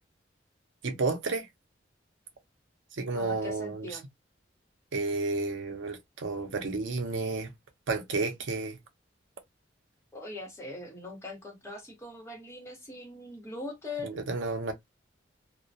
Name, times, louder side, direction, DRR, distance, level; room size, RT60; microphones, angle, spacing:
voice 1, 0.8-1.5 3.0-4.0 4.9-7.5 7.9-8.8 14.0-14.7, right 3 dB, 80° right, 0.6 m, -31 dB
voice 2, 3.1-4.0 10.1-14.2, left 2 dB, 15° left, 1.0 m, -41 dB
2.2 x 2.1 x 2.6 m
head